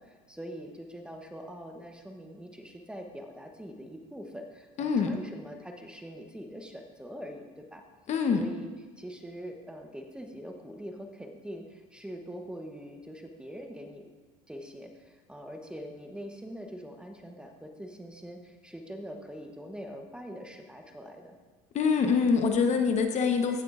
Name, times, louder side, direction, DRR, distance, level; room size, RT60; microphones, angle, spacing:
voice 1, 0.0-7.8 8.4-8.7 9.0-14.1 14.5-21.4, equal, 5° right, 4 dB, 0.9 m, -43 dB
voice 2, 4.8-5.2 8.1-8.4 21.7-23.6, left 5 dB, 40° left, 5 dB, 1.0 m, -25 dB
16.0 x 6.6 x 2.5 m, 1.3 s
supercardioid pair, 100°, 18 cm